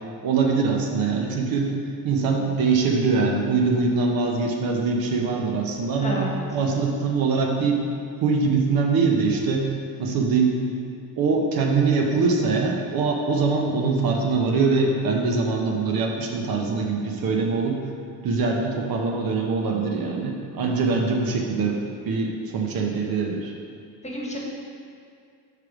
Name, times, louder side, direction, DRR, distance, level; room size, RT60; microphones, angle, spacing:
voice 1, 0.2-1.7 2.0-6.2 6.5-7.8 8.2-9.7 10.0-10.6 11.2-17.8 18.2-23.5, right 4 dB, 65° right, 0 dB, 0.9 m, -23 dB
voice 2, 6.0-6.4 24.0-24.4, equal, 15° left, -3 dB, 1.2 m, -29 dB
5.0 x 4.7 x 4.9 m, 2.3 s
cardioid pair, 95°, 39 cm